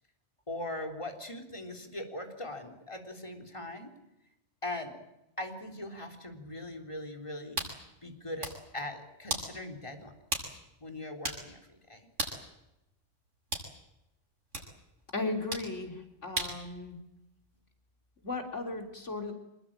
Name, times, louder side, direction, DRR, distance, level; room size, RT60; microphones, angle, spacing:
voice 1, 0.5-3.9 4.6-5.0 5.4-7.6 8.0-10.1 10.4-12.1, left 1 dB, 25° left, 4 dB, 3.7 m, -40 dB
sound 1, 7.6-7.8 8.2-8.6 9.3-9.5 10.3-10.5 10.8-10.9 11.2-11.5 12.2-12.4 13.5-13.7 14.5-14.7 15.5-15.7 16.4-16.6, right 1 dB, 85° right, 7.1 m, -34 dB
voice 2, 15.1-17.0 18.2-19.3, left 3 dB, 90° left, 4 dB, 3.9 m, -36 dB
26.0 x 21.5 x 8.9 m, 0.88 s
omnidirectional pair, 1.2 m